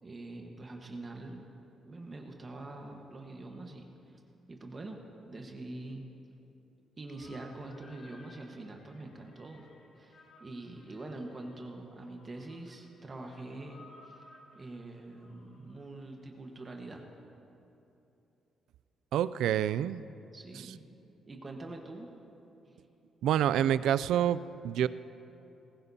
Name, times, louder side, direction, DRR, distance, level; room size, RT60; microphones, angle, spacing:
voice 1, 0.0-1.5 1.9-4.2 4.5-5.0 5.3-6.1 7.0-9.7 10.0-14.2 14.5-17.1 20.3-20.9 21.3-22.1, right 2 dB, 30° right, 2 dB, 1.3 m, -44 dB
sound 1, 7.1-16.5, left 2 dB, 80° left, 2.4 m, -59 dB
voice 2, 19.1-20.0 20.5-20.7 23.2-24.9, right 10 dB, 85° right, 15 dB, 0.3 m, -28 dB
20.0 x 14.5 x 2.8 m, 3.0 s
cardioid pair, 100°, 0 cm